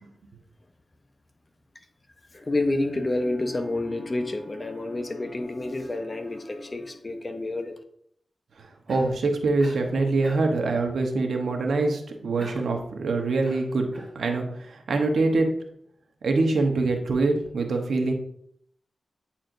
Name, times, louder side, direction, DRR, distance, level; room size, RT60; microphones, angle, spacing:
voice 1, 2.3-7.8, left 2 dB, 35° left, 6 dB, 0.8 m, -29 dB
voice 2, 8.6-13.9 14.1-15.6 16.2-18.1, right 3 dB, 85° right, 3 dB, 1.0 m, -24 dB
Cough, 8.9-9.2 9.6-9.9 10.2-10.6 12.4-12.8 13.4-14.2, right 1 dB, 10° right, 2.1 m, -43 dB
8.8 x 4.3 x 2.6 m, 0.67 s
cardioid pair, 70°, 0 cm